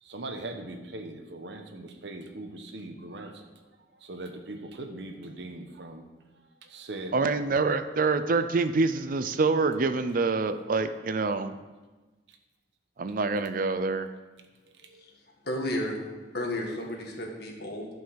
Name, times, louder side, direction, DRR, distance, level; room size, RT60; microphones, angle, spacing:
voice 1, 0.0-3.4 4.0-6.1 6.6-7.2 7.4-7.8 12.3-12.4 14.8-15.1, right 2 dB, 75° right, 5 dB, 1.1 m, -40 dB
voice 2, 7.1-11.6 13.0-14.1, right 3 dB, 50° right, 11 dB, 0.5 m, -26 dB
voice 3, 15.4-16.1 16.3-17.9, left 1 dB, 60° left, 0 dB, 1.9 m, -32 dB
11.5 x 5.4 x 6.4 m, 1.2 s
head